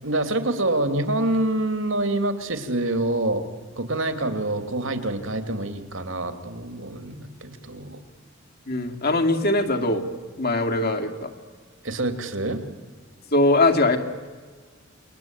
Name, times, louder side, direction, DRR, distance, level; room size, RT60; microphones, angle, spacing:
voice 1, 0.0-3.5 3.8-8.0 11.8-12.6, right 1 dB, 70° right, 8 dB, 2.8 m, -26 dB
voice 2, 8.7-10.0 10.4-11.3 13.3-14.0, left 2 dB, 50° left, 5 dB, 2.5 m, -21 dB
28.5 x 22.5 x 9.1 m, 1.5 s
head